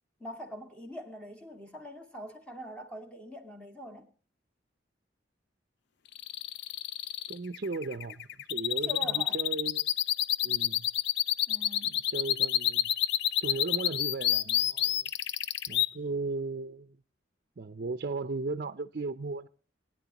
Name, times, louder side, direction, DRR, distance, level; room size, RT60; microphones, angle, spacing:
voice 1, 0.2-4.1 8.9-9.4 11.5-12.0, equal, 5° left, 2.2 m, -43 dB
sound 1, 6.1-15.9, left 11 dB, 65° left, 0.5 m, -28 dB
voice 2, 7.3-9.9 10.4-10.9 11.9-12.9 13.4-15.1 15.7-17.0 17.6-19.5, right 3 dB, 55° right, 0.6 m, -36 dB
20.5 x 10.0 x 2.9 m
head